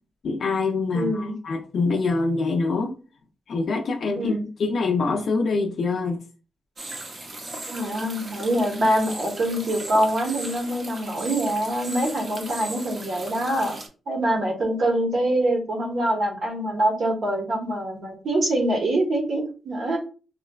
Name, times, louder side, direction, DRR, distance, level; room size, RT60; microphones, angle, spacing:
voice 1, 0.2-3.0 3.5-6.2, left 3 dB, 55° left, 1 dB, 0.3 m, -25 dB
voice 2, 0.9-1.3 4.2-4.4 7.7-13.8 14.1-20.0, right 1 dB, 55° right, 1 dB, 0.9 m, -24 dB
sound 1, 6.8-13.9, right 2 dB, 35° right, 0.6 m, -37 dB
3.8 x 2.2 x 2.2 m, 0.35 s
wide cardioid pair, 175°, 0 cm